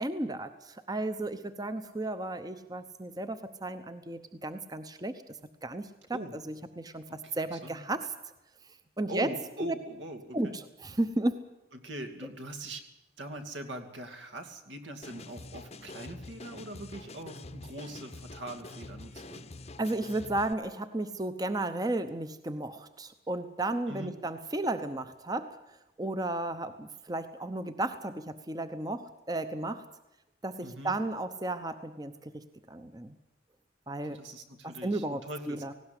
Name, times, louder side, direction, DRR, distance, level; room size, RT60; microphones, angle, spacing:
voice 1, 0.0-5.2 5.6-8.1 9.0-9.3 9.6-9.7 10.3-11.4 19.8-25.6 26.0-29.8 30.4-33.1 33.9-34.2 34.6-35.7, right 2 dB, 20° right, 10 dB, 0.8 m, -34 dB
voice 2, 7.1-7.8 9.1-10.6 11.7-12.8 13.2-19.4 23.9-24.1 30.6-31.0 34.1-35.7, right 1 dB, 80° right, 7 dB, 2.7 m, -42 dB
sound 1, 15.0-20.5, left 2 dB, 35° left, 0.8 m, -46 dB
18.5 x 17.0 x 9.8 m, 0.93 s
head